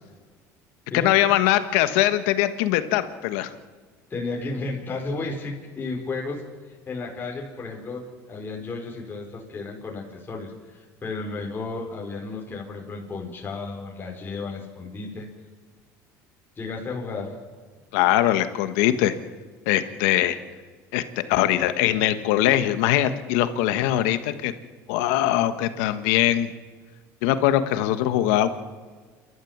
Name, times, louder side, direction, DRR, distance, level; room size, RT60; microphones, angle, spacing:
voice 1, 0.9-3.5 17.9-19.1 19.7-20.4 20.9-21.0 21.3-24.5 24.9-26.5 27.2-28.5, left 13 dB, 85° left, 11 dB, 1.4 m, -21 dB
voice 2, 4.1-6.4 6.9-15.3 16.6-17.4, left 3 dB, 25° left, -1 dB, 4.7 m, -33 dB
29.5 x 13.0 x 7.4 m, 1.5 s
supercardioid pair, 100°, 8 cm